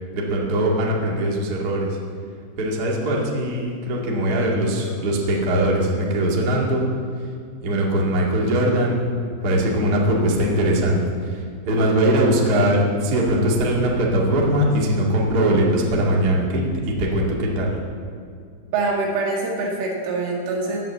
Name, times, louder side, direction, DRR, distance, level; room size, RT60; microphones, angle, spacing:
voice 1, 0.1-2.0 2.6-6.8 7.6-9.0 9.4-11.0 11.2-17.7, right 1 dB, 50° right, -3 dB, 1.1 m, -21 dB
voice 2, 18.7-20.8, right 3 dB, 85° right, -1 dB, 4.5 m, -24 dB
18.0 x 6.1 x 7.6 m, 2.3 s
omnidirectional pair, 5.5 m